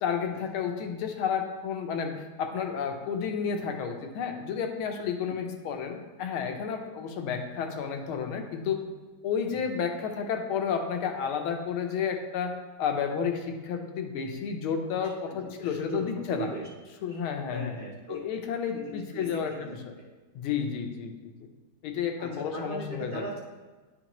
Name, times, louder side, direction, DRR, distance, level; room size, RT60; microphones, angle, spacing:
voice 1, 0.0-8.8 9.2-16.5 17.0-17.7 18.1-19.9 20.3-21.3 21.8-23.2, left 7 dB, 85° left, 4 dB, 1.6 m, -31 dB
voice 2, 15.3-16.7 17.1-17.2 17.5-18.2 18.7-19.8 22.2-23.4, right 2 dB, 50° right, -7 dB, 0.6 m, -39 dB
10.0 x 4.5 x 3.0 m, 1.3 s
omnidirectional pair, 2.3 m